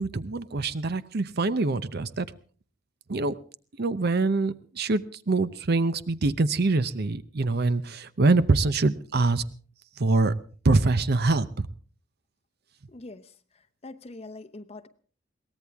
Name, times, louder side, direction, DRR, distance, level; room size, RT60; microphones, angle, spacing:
voice 1, 0.0-2.3 3.1-3.3 3.8-9.4 10.0-10.3 10.6-11.7, right 3 dB, 55° right, 15 dB, 0.7 m, -24 dB
voice 2, 12.9-13.3 13.8-14.9, left 2 dB, 30° left, 10 dB, 0.8 m, -43 dB
22.5 x 18.0 x 3.5 m, 0.41 s
head